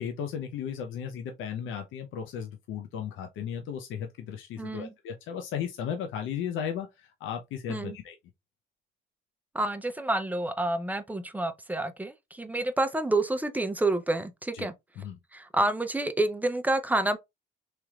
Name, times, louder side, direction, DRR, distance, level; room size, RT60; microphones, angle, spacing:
voice 1, 0.0-8.1 14.5-14.7 15.0-15.2, left 8 dB, 85° left, 0.5 m, -35 dB
voice 2, 4.6-4.9 7.7-8.0 9.5-14.7 15.3-17.2, right 2 dB, 10° right, 0.5 m, -28 dB
3.2 x 2.9 x 2.3 m
cardioid pair, 90°, 20 cm